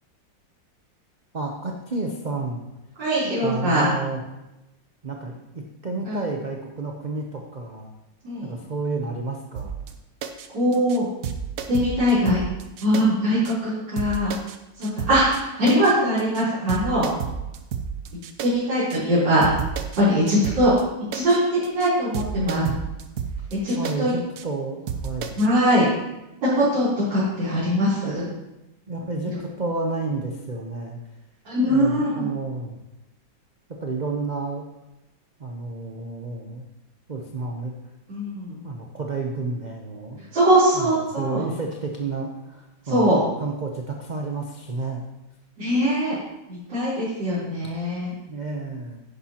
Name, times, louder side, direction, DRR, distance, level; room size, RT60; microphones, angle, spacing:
voice 1, 1.3-2.6 3.4-4.2 5.0-7.9 8.4-9.7 22.4-22.8 23.8-25.4 28.9-31.0 31.7-32.8 33.7-34.6 35.4-36.7 37.1-37.7 38.6-40.3 40.7-40.9 41.2-45.1 48.3-49.0, right 3 dB, 45° right, 1 dB, 0.5 m, -30 dB
voice 2, 3.0-3.9 6.0-6.2 8.2-8.5 10.5-11.1 11.7-12.4 12.8-14.4 14.8-17.1 18.4-19.5 20.0-20.7 21.1-22.6 23.5-24.1 25.4-25.8 26.4-28.3 29.3-29.4 31.4-32.3 38.1-38.6 40.3-41.4 42.8-43.2 45.6-46.1 46.5-48.1, equal, 75° right, -13 dB, 4.3 m, -21 dB
sound 1, 9.6-9.9 10.2-10.5 10.7-11.0 11.2-13.0 13.4-13.5 14.0-14.6 14.8-15.4 15.7-15.9 16.2-16.4 16.7-18.5 18.9-19.0 19.4-20.0 20.3-20.8 21.1-21.4 21.6-21.9 22.1-23.9 24.4-24.5 24.9-25.5, right 7 dB, 60° right, 1.0 m, -31 dB
10.5 x 10.0 x 2.9 m, 0.97 s
omnidirectional pair, 2.0 m